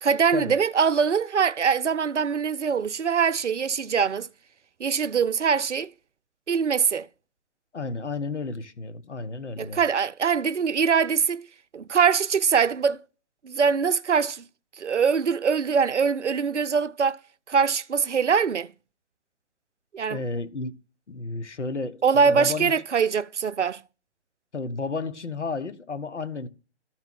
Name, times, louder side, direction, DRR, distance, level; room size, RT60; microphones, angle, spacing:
voice 1, 0.0-4.3 4.8-5.9 6.5-7.1 9.6-11.5 11.7-13.0 13.4-14.4 14.8-17.2 17.5-18.7 19.9-20.2 22.0-23.8, right 6 dB, 80° right, 0.6 m, -23 dB
voice 2, 7.7-9.8 20.1-20.7 21.1-22.7 24.5-26.5, left 3 dB, 75° left, 1.1 m, -32 dB
13.0 x 4.6 x 3.6 m
figure-of-eight pair, 130°, 35 cm